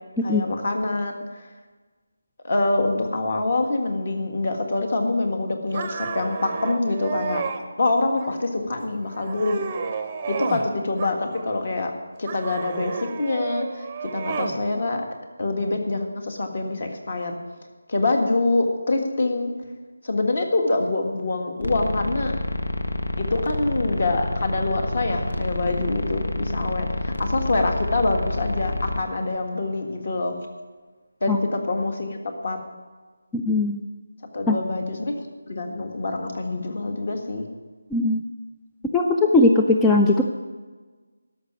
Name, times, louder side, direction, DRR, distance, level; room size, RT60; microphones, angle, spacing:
voice 1, 0.2-1.5 2.4-7.4 7.8-9.6 10.3-11.9 12.2-13.9 14.1-15.1 15.4-17.4 17.9-19.5 20.0-22.4 23.2-30.3 31.2-32.6 34.3-37.5, left 2 dB, 45° left, 4 dB, 1.7 m, -25 dB
sound 1, 5.7-7.6 8.2-8.7 9.1-10.7 11.0-11.7 12.2-14.6, right 5 dB, 15° right, 0.7 m, -32 dB
sound 2, 21.6-29.0, left 1 dB, 80° left, 1.4 m, -28 dB
voice 2, 33.3-33.8 34.5-34.6 37.9-38.2 38.9-40.2, left 2 dB, 5° left, 1 dB, 0.3 m, -19 dB
13.0 x 5.9 x 9.1 m, 1.4 s
figure-of-eight pair, 175°, 0 cm